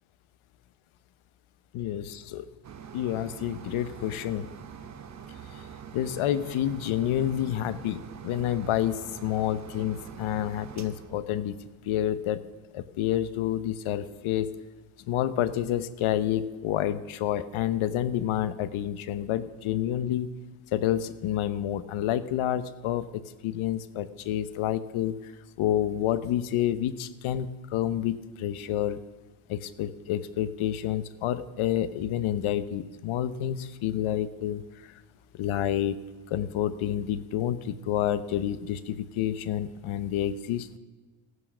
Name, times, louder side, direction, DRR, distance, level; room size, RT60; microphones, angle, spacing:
voice 1, 1.7-2.4 2.9-4.5 5.5-5.6 5.9-11.6 11.9-12.4 12.7-14.5 15.1-20.3 20.7-23.1 23.4-25.3 25.6-29.0 29.5-34.9 35.4-36.0 36.3-40.8, left 11 dB, 75° left, 13 dB, 1.0 m, -29 dB
sound 1, 2.6-12.1 12.8-12.9 13.3-13.4, right 7 dB, 35° right, 0.9 m, -45 dB
15.5 x 9.6 x 6.2 m, 1.3 s
cardioid pair, 165°, 49 cm